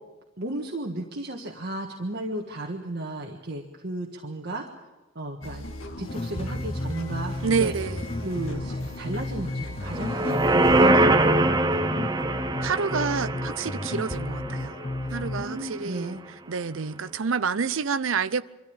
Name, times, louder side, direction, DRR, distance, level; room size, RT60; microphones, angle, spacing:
voice 1, 0.4-4.7 5.1-5.7 6.0-7.7 8.2-11.5 15.3-16.2, right 1 dB, 55° right, 1.6 m, -34 dB
sound 1, 5.4-10.9, left 1 dB, 75° left, 1.9 m, -38 dB
sound 2, 6.1-15.6, left 2 dB, 25° left, 0.6 m, -33 dB
voice 2, 7.4-8.1 12.6-14.7 15.1-16.2 16.5-18.4, right 5 dB, 70° right, 0.6 m, -28 dB
sound 3, 9.8-15.2 15.6-15.7, right 2 dB, 20° right, 0.8 m, -23 dB
24.5 x 13.5 x 8.8 m
head